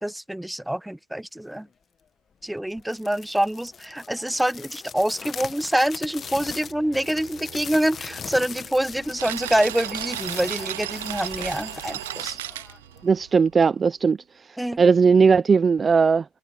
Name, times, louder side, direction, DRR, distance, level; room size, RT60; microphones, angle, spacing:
voice 1, 0.0-1.7 2.4-12.4 14.6-14.8, right 1 dB, 5° right, 1.1 m, -26 dB
sound 1, 2.8-13.1, left 6 dB, 35° left, 1.4 m, -40 dB
sound 2, 5.8-11.1, right 12 dB, 50° right, 4.3 m, -50 dB
sound 3, 9.2-13.5, right 15 dB, 90° right, 0.5 m, -33 dB
voice 2, 13.0-14.2 14.8-16.2, right 5 dB, 25° right, 0.5 m, -18 dB
supercardioid pair, 90°, 0 cm